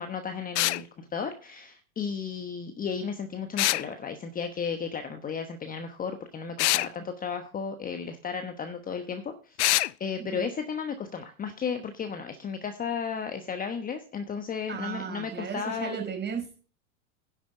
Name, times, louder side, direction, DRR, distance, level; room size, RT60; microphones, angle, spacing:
voice 1, 0.0-16.0, left 6 dB, 20° left, 7 dB, 1.1 m, -34 dB
sound 1, 0.6-0.8 3.6-3.9 6.6-6.9 9.6-9.9, left 19 dB, 55° left, 0.5 m, -24 dB
voice 2, 14.7-16.6, right 6 dB, 25° right, 2 dB, 5.1 m, -35 dB
10.5 x 7.4 x 4.8 m, 0.38 s
hypercardioid pair, 100°, 44 cm